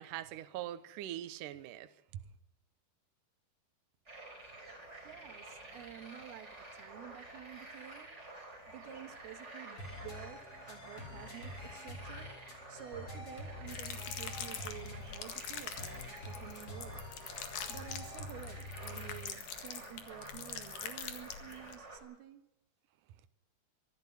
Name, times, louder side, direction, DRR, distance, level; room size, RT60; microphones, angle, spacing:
voice 1, 0.0-2.2, right 12 dB, 70° right, 2.3 m, -43 dB
sound 1, 4.1-22.0, right 2 dB, 15° right, 5.0 m, -50 dB
voice 2, 5.0-8.1 8.7-12.3 12.7-17.0 17.7-22.4, right 11 dB, 90° right, 3.4 m, -51 dB
sound 2, 9.8-19.4, left 1 dB, 40° left, 4.4 m, -47 dB
sound 3, 13.7-21.7, left 8 dB, 60° left, 3.2 m, -44 dB
24.0 x 13.0 x 9.9 m
omnidirectional pair, 4.3 m